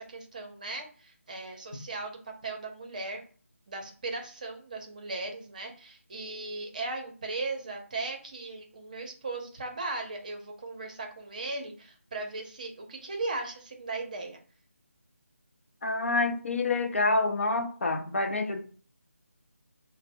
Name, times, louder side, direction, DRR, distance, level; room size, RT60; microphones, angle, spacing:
voice 1, 0.0-3.2 3.7-14.4, right 3 dB, 30° right, 3 dB, 0.7 m, -37 dB
voice 2, 15.8-18.6, left 2 dB, 55° left, 5 dB, 0.7 m, -27 dB
3.3 x 2.0 x 4.1 m, 0.42 s
figure-of-eight pair, 170°, 8 cm